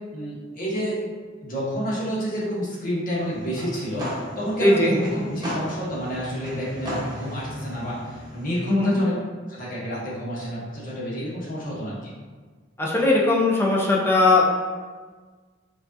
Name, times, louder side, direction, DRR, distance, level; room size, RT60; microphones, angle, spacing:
voice 1, 0.1-1.0 1.4-9.1 9.5-12.1, equal, 45° left, -6 dB, 1.1 m, -29 dB
sound 1, 3.1-8.6, equal, 20° right, 1.0 m, -35 dB
voice 2, 4.6-5.0 8.7-9.0 12.8-14.4, left 2 dB, 10° left, -3 dB, 0.5 m, -19 dB
4.9 x 2.4 x 2.6 m, 1.5 s
head